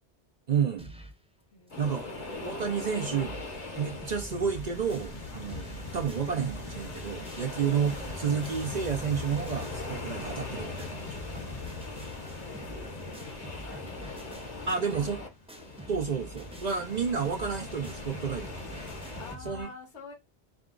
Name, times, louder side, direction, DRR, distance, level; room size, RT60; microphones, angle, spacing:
voice 1, 0.5-0.9 1.8-2.0 2.4-3.4 3.8-11.6 14.7-15.2 15.9-18.7 19.5-19.7, right 6 dB, 50° right, 0.5 m, -31 dB
sound 1, 0.8-1.2 1.7-1.8 2.0-2.1 2.6-2.7 2.9-3.5 3.7-19.6, right 1 dB, 5° right, 0.8 m, -46 dB
voice 2, 1.5-2.3 7.4-7.6 11.9-14.3 14.7-15.3 19.2-20.1, left 4 dB, 85° left, 1.6 m, -49 dB
sound 2, 1.7-19.3, left 3 dB, 40° left, 1.0 m, -40 dB
4.8 x 2.3 x 3.7 m
omnidirectional pair, 1.2 m